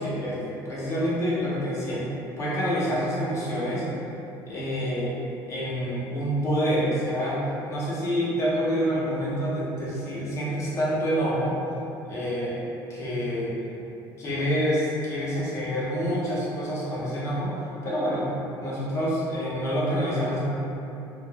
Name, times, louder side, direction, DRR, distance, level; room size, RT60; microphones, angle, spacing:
voice 1, 0.0-2.0 2.4-3.9 4.5-5.1 5.5-11.6 12.1-12.6 12.9-13.6 14.2-17.5 17.8-18.3 18.6-20.4, equal, 35° left, -7 dB, 0.6 m, -27 dB
3.1 x 2.1 x 2.2 m, 2.9 s
cardioid pair, 160°, 9 cm